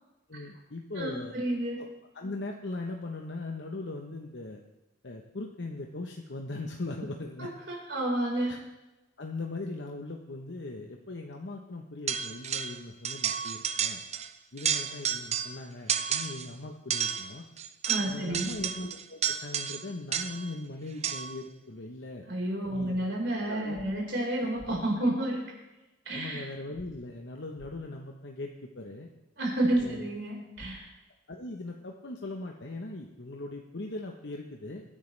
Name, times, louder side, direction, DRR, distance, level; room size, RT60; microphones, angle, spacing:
voice 1, 0.3-1.3 2.1-4.6 5.0-7.5 8.5-8.6 9.2-14.0 14.5-17.4 18.0-22.3 22.7-23.0 23.5-23.9 26.1-29.1 29.8-30.1 31.3-34.8, left 2 dB, 70° left, 2 dB, 1.0 m, -39 dB
voice 2, 0.9-1.9 7.4-8.6 17.8-18.5 22.3-25.4 26.0-26.4 29.4-30.9, right 1 dB, 70° right, -2 dB, 4.7 m, -30 dB
sound 1, 12.1-12.8 13.0-14.3 14.6-15.6 15.9-16.5 16.9-20.5 21.0-21.4, right 8 dB, 35° right, 0.7 m, -31 dB
sound 2, 23.7-23.9 24.6-24.7 26.7-26.9 27.6-27.7 29.7-29.9 30.5-30.7, left 1 dB, 20° left, 1.5 m, -49 dB
22.5 x 10.0 x 3.4 m, 1.0 s
head